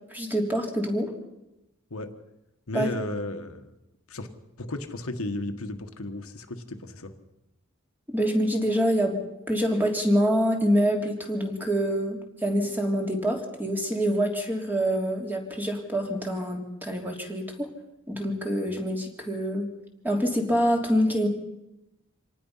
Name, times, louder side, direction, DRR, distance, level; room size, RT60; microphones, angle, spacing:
voice 1, 0.1-1.1 2.7-2.9 8.1-17.7 18.1-19.7 20.0-21.3, equal, 10° right, 1 dB, 3.2 m, -26 dB
voice 2, 2.7-3.7 4.1-4.3 4.6-7.1, left 1 dB, 75° left, 6 dB, 1.6 m, -34 dB
26.0 x 19.0 x 5.7 m, 0.91 s
head